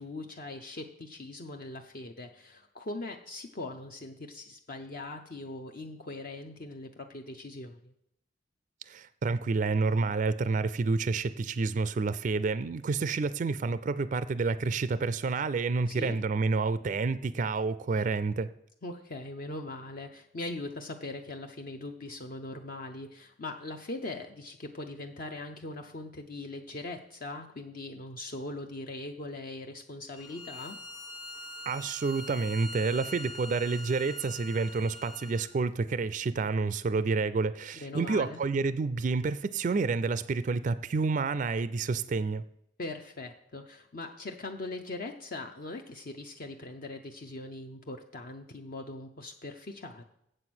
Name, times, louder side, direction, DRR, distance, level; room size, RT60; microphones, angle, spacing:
voice 1, 0.0-7.9 15.9-16.2 18.8-30.8 37.8-38.4 42.8-50.0, left 2 dB, 50° left, 4 dB, 0.6 m, -41 dB
voice 2, 8.9-18.5 31.7-42.4, right 4 dB, 40° right, 15 dB, 0.3 m, -29 dB
Bowed string instrument, 30.2-35.5, left 1 dB, 20° left, 1.2 m, -43 dB
7.8 x 7.5 x 6.1 m, 0.78 s
head